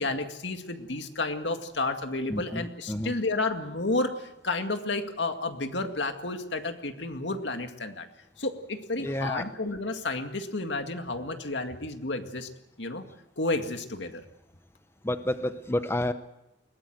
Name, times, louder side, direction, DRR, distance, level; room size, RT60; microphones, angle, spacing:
voice 1, 0.0-8.1 8.4-12.5 12.8-13.1 13.4-14.2, left 2 dB, 75° left, 6 dB, 2.1 m, -31 dB
voice 2, 2.3-3.1 9.0-9.5 15.0-16.1, left 1 dB, 15° left, 10 dB, 0.8 m, -30 dB
21.5 x 18.5 x 7.8 m, 0.87 s
head